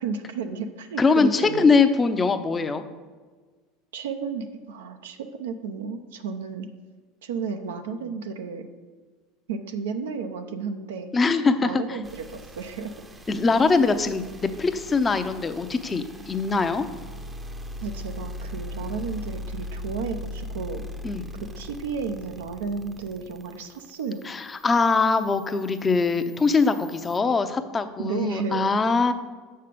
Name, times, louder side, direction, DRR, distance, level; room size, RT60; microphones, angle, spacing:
voice 1, 0.0-1.7 3.9-6.7 7.2-8.7 9.5-11.1 11.6-12.9 17.8-20.8 21.6-24.2 28.0-28.7, right 5 dB, 85° right, 6 dB, 0.7 m, -32 dB
voice 2, 1.0-2.8 11.1-12.0 13.3-16.9 21.0-21.3 24.3-29.1, left 4 dB, 25° left, 9 dB, 0.7 m, -22 dB
sound 1, 12.0-27.2, left 1 dB, 20° right, 0.7 m, -40 dB
6.6 x 5.6 x 6.7 m, 1.4 s
hypercardioid pair, 90°, 0 cm